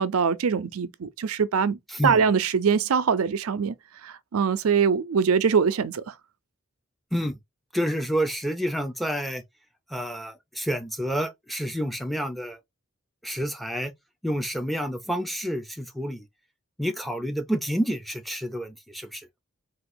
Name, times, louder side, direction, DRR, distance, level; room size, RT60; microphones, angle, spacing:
voice 1, 0.0-3.7 4.0-6.1, right 6 dB, 80° right, 0.5 m, -23 dB
voice 2, 7.7-9.4 9.9-12.6 13.2-13.9 14.2-16.2 16.8-19.3, equal, ahead, 0.6 m, -29 dB
3.7 x 2.4 x 4.3 m
head